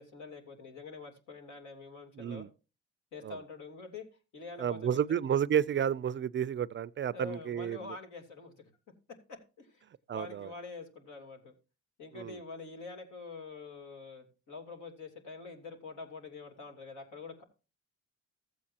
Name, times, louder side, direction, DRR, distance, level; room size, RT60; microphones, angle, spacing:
voice 1, 0.0-2.4 3.1-4.0 4.3-5.3 7.1-8.7 9.3-9.8 10.1-11.5 12.0-17.4, left 4 dB, 75° left, 3.1 m, -46 dB
voice 2, 2.2-2.5 3.2-3.4 4.6-8.0 10.1-10.5 12.1-12.4, right 9 dB, 40° right, 0.4 m, -31 dB
14.5 x 8.4 x 2.8 m
cardioid pair, 90°, 30 cm